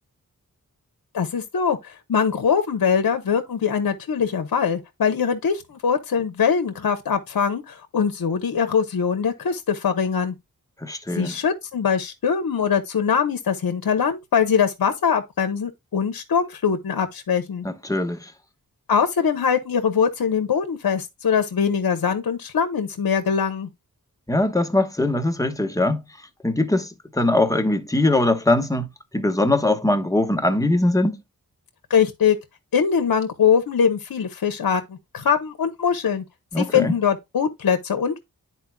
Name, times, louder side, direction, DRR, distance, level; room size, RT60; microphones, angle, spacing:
voice 1, 1.1-10.3 11.2-17.7 18.9-23.7 31.9-32.4 32.7-34.8 35.1-36.2 36.6-38.2, left 7 dB, 65° left, 0.9 m, -22 dB
voice 2, 10.8-11.4 17.6-18.3 24.3-26.0 26.4-28.9 29.1-31.2 36.5-36.9, left 2 dB, 10° left, 1.2 m, -21 dB
10.5 x 4.4 x 2.2 m
cardioid pair, 40°, 37 cm